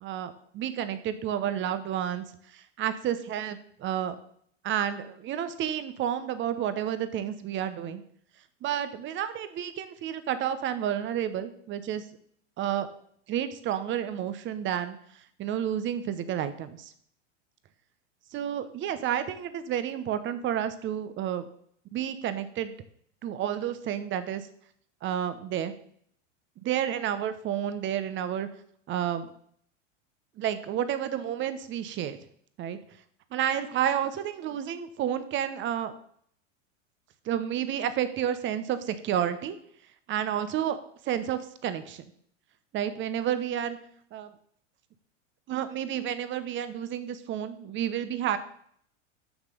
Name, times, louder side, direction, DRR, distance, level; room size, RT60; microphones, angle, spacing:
voice 1, 0.0-2.3 2.5-4.2 4.6-8.0 8.6-12.0 12.6-12.9 13.3-15.0 15.4-16.9 18.3-21.4 21.9-22.7 23.2-24.5 25.0-25.7 26.6-28.5 28.9-29.3 30.4-32.2 32.6-32.8 33.3-35.9 37.3-39.6 40.1-40.8 41.0-42.0 42.7-43.8 44.1-44.3 45.5-48.4, right 10 dB, 30° right, 12 dB, 1.0 m, -30 dB
7.1 x 5.9 x 6.8 m, 0.64 s
hypercardioid pair, 120°, 37 cm